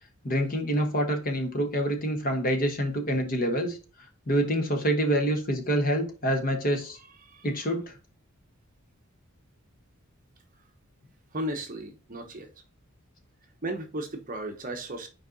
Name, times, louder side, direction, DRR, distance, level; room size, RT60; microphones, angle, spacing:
voice 1, 0.2-3.8 4.3-7.0 7.4-7.9, equal, 40° left, 1.1 m, -26 dB
voice 2, 11.3-12.5 13.6-15.1, right 1 dB, 35° right, 0.9 m, -35 dB
5.2 x 4.6 x 4.0 m
head